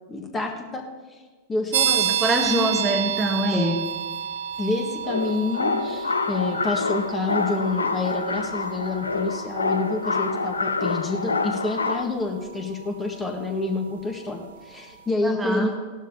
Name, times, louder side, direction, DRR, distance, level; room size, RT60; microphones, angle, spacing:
voice 1, 0.1-0.8 1.5-2.1 2.5-2.7 3.5-3.8 4.6-15.8, left 3 dB, 15° left, 2 dB, 1.5 m, -28 dB
sound 1, 1.7-14.2, right 10 dB, 60° right, 0.5 m, -31 dB
voice 2, 1.9-3.8 15.2-15.7, right 1 dB, 10° right, 2 dB, 1.2 m, -25 dB
sound 2, 5.0-12.0, left 4 dB, 75° left, 0.6 m, -27 dB
17.5 x 12.0 x 2.8 m, 1.4 s
figure-of-eight pair, 90°, 0 cm